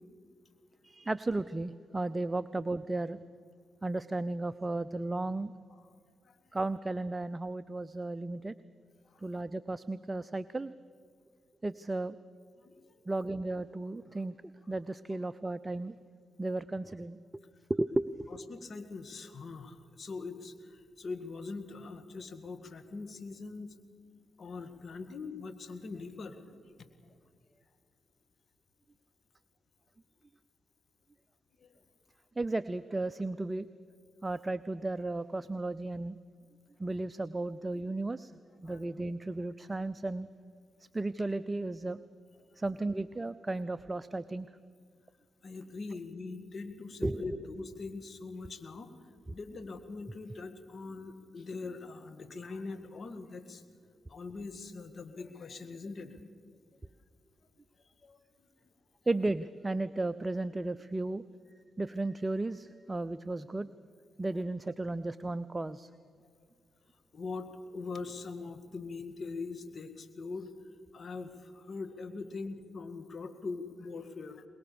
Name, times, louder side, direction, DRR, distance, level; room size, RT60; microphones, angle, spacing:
voice 1, 0.8-3.2 3.8-5.6 6.5-8.5 9.2-10.7 11.6-12.2 13.1-14.4 14.7-15.9 16.4-17.4 17.7-18.4 32.4-33.7 34.2-36.2 36.8-38.3 38.6-40.3 40.9-42.0 42.6-44.5 47.0-47.3 59.1-61.2 61.8-63.7 64.2-65.9, right 2 dB, 25° right, 14 dB, 0.6 m, -34 dB
voice 2, 12.6-12.9 18.5-23.7 24.4-26.4 31.6-31.7 38.6-38.8 45.4-48.9 49.3-53.6 54.1-56.2 58.0-58.2 67.1-70.5 70.9-74.4, left 4 dB, 55° left, 9 dB, 2.0 m, -42 dB
23.0 x 21.5 x 7.1 m, 2.2 s
supercardioid pair, 50°, 0 cm